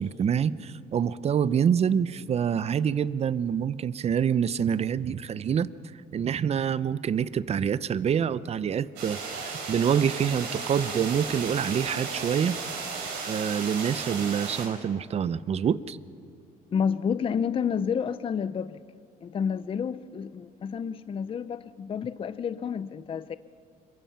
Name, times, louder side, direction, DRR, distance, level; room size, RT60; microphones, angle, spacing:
voice 1, 0.0-5.7 6.1-12.6 13.2-16.0, right 8 dB, 40° right, 0.6 m, -26 dB
sound 1, 9.0-14.7, right 4 dB, 85° right, 5.1 m, -35 dB
voice 2, 16.7-18.8 19.2-23.4, left 7 dB, 30° left, 0.5 m, -30 dB
26.0 x 22.5 x 5.8 m
cardioid pair, 110°, 17 cm